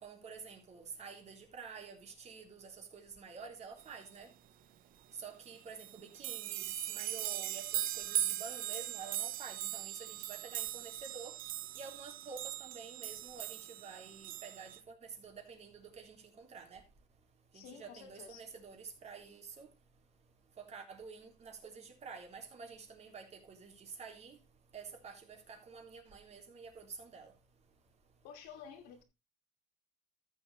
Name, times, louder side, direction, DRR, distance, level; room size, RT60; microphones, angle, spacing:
voice 1, 0.0-4.3 5.2-11.3 11.8-16.8 17.5-19.7 20.6-24.4 24.7-27.3, right 5 dB, 40° right, 3.6 m, -49 dB
sound 1, 5.4-5.5 5.8-14.8, right 13 dB, 60° right, 0.7 m, -39 dB
voice 2, 17.5-18.4 28.2-29.0, left 7 dB, 85° left, 2.6 m, -51 dB
14.0 x 7.1 x 3.3 m
cardioid pair, 110°, 16 cm